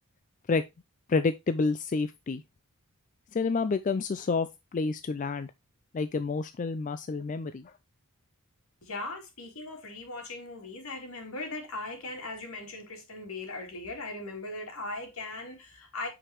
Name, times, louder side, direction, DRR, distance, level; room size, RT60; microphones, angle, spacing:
voice 1, 1.1-2.4 3.3-5.5 5.9-7.7, left 4 dB, 35° left, 0.4 m, -29 dB
voice 2, 8.8-16.1, left 2 dB, 70° left, 2.7 m, -39 dB
8.9 x 5.0 x 3.0 m
head